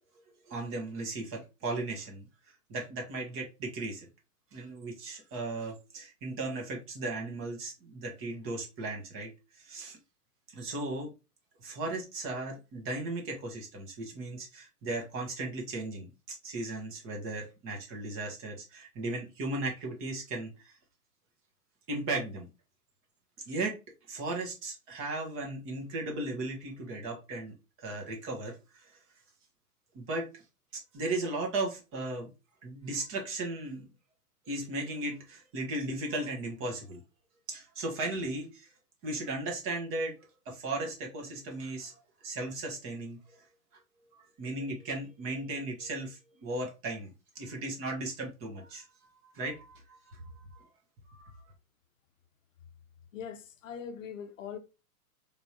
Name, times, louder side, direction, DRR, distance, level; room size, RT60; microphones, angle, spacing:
voice 1, 0.5-2.3 2.7-4.1 4.5-10.0 10.5-11.1 11.6-20.7 21.9-22.5 23.5-23.8 24.1-28.9 29.9-30.3 30.9-32.3 32.6-33.9 34.5-37.0 37.5-38.7 39.0-40.2 40.4-41.9 42.2-43.2 44.1-48.9 49.2-50.7 51.1-51.4, right 2 dB, 30° right, 1.5 m, -36 dB
voice 2, 53.1-54.6, left 7 dB, 55° left, 0.8 m, -41 dB
4.2 x 3.5 x 2.9 m
figure-of-eight pair, 110°, 46 cm